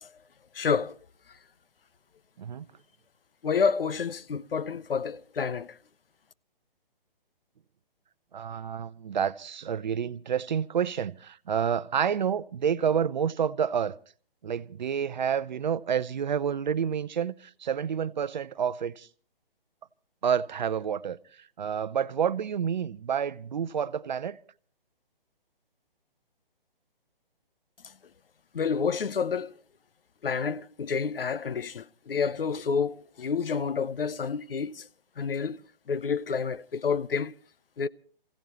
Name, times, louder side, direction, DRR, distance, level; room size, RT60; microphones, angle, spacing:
voice 1, 0.5-1.0 3.4-5.8 27.8-27.9 28.5-29.5 30.2-34.9 35.2-35.6 35.9-37.4 37.8-37.9, left 6 dB, 70° left, 0.7 m, -29 dB
voice 2, 8.3-13.9 14.4-19.1 20.2-24.4, right 8 dB, 50° right, 0.7 m, -29 dB
28.5 x 16.0 x 3.0 m
figure-of-eight pair, 140°, 29 cm